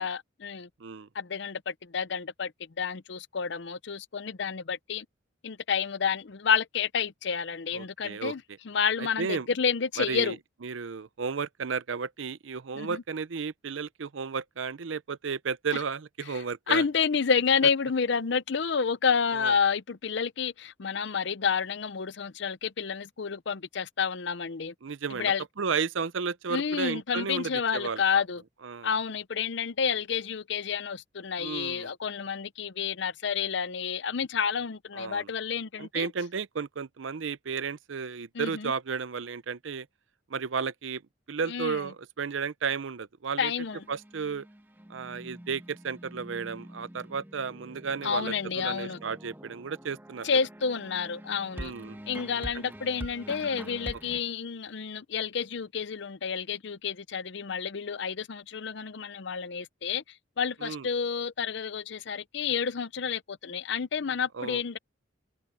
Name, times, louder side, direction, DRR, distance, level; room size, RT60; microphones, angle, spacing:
voice 1, 0.0-0.7 1.1-2.5 2.8-5.1 5.4-10.4 12.7-13.0 15.7-15.8 16.3-24.7 25.1-25.4 26.5-28.4 28.8-36.1 38.3-38.7 41.5-41.9 43.4-43.8 48.0-49.0 50.2-51.7 52.1-60.0 60.4-64.8, left 6 dB, 60° left, 0.6 m, -30 dB
voice 2, 7.7-8.3 9.0-9.5 10.0-10.4 10.6-16.8 19.3-19.5 24.8-28.2 28.6-28.9 31.4-31.9 35.0-35.3 35.8-39.9 40.3-41.0 41.3-43.5 43.9-44.5 44.9-50.3 51.6-52.0 60.6-60.9 64.3-64.8, right 5 dB, 75° right, 0.6 m, -33 dB
Happy Hip Hop Beat, 43.6-54.2, equal, 10° right, 1.3 m, -45 dB
head